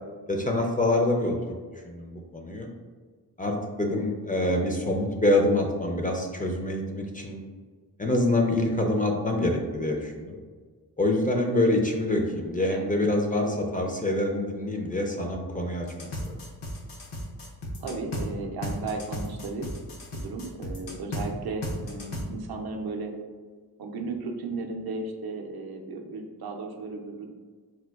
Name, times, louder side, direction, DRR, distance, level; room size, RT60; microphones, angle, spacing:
voice 1, 0.3-1.6 1.8-2.7 3.4-7.4 8.0-10.4 11.0-15.9 16.1-16.4, left 1 dB, 20° left, 1 dB, 0.3 m, -26 dB
sound 1, 15.9-18.3 18.6-21.3 21.6-22.2, left 1 dB, 85° left, 0.7 m, -34 dB
voice 2, 17.8-19.7 20.1-23.1 23.8-27.3, right 3 dB, 65° right, 2 dB, 0.5 m, -35 dB
4.3 x 2.2 x 2.3 m, 1.5 s
cardioid pair, 75°, 40 cm